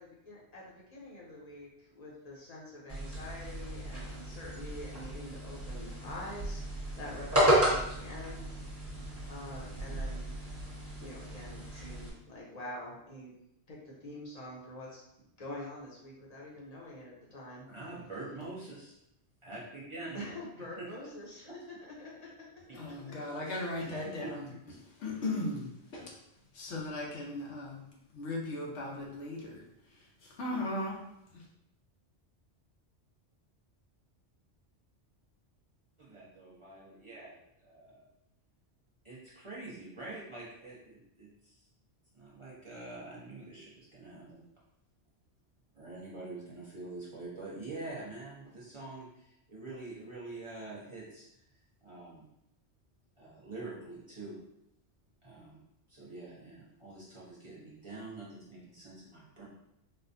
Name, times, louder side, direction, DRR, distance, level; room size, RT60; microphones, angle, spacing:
voice 1, 0.0-8.5 9.3-10.3 11.0-13.3 13.7-17.7 20.1-23.1, left 1 dB, 40° left, -4 dB, 0.8 m, -46 dB
sound 1, 2.9-12.1, right 1 dB, 15° right, 1.1 m, -33 dB
voice 2, 17.7-19.0 19.4-20.2 20.8-20.9 21.5-21.6 24.0-24.3 36.0-38.0 39.0-41.6 42.1-44.4 45.7-51.3 51.8-52.3 53.2-54.4 55.2-55.6 55.9-59.4, right 2 dB, 30° right, -8 dB, 0.8 m, -45 dB
voice 3, 22.8-24.5 25.0-26.2 26.5-27.8 28.1-31.5, left 2 dB, 80° left, -2 dB, 1.1 m, -38 dB
4.1 x 2.2 x 2.6 m, 0.82 s
omnidirectional pair, 1.2 m